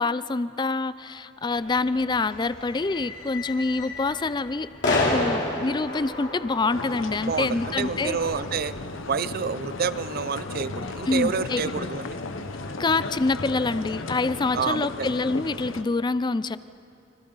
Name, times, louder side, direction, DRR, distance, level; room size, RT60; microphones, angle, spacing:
voice 1, 0.0-4.7 5.1-8.2 11.1-11.9 12.8-16.6, left 3 dB, 25° left, 15 dB, 0.4 m, -26 dB
sound 1, 1.5-14.7, left 2 dB, 65° left, 3.3 m, -34 dB
sound 2, 6.7-15.8, left 3 dB, 85° left, 0.9 m, -35 dB
voice 2, 7.3-8.7 9.0-12.2 14.5-15.1, right 6 dB, 50° right, 16 dB, 0.5 m, -28 dB
30.0 x 25.0 x 4.0 m, 2.7 s
head